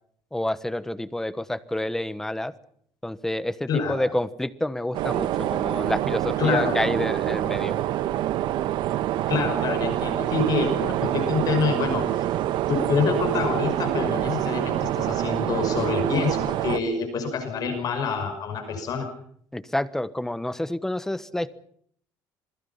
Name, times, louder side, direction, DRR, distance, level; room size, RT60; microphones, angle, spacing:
voice 1, 0.3-2.5 3.0-7.8 19.5-21.5, left 1 dB, 5° left, 14 dB, 1.2 m, -28 dB
voice 2, 3.7-4.0 6.4-6.8 9.3-12.1 12.7-19.1, left 5 dB, 50° left, 7 dB, 5.7 m, -26 dB
sound 1, 4.9-16.8, right 13 dB, 70° right, 1.3 m, -26 dB
27.5 x 21.5 x 5.8 m, 0.63 s
cardioid pair, 140°, 8 cm